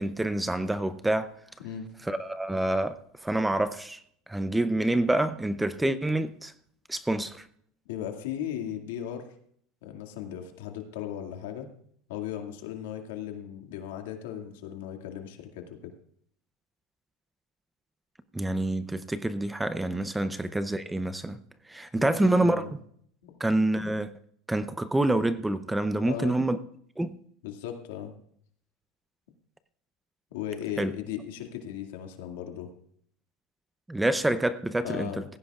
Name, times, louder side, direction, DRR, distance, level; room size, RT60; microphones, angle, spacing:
voice 1, 0.0-1.3 2.1-3.0 3.2-4.0 4.3-6.5 6.9-7.4 18.3-21.4 21.7-22.6 23.4-24.1 24.5-26.6 27.0-27.1 30.8-30.9 33.9-35.2, right 1 dB, 5° right, 0.6 m, -27 dB
voice 2, 7.9-9.3 9.8-11.7 12.1-15.9 20.2-20.3 21.9-22.7 23.2-23.3 26.0-26.4 27.4-28.1 30.3-32.7 34.8-35.3, left 10 dB, 85° left, 2.1 m, -37 dB
17.5 x 15.5 x 2.4 m
supercardioid pair, 145°, 0 cm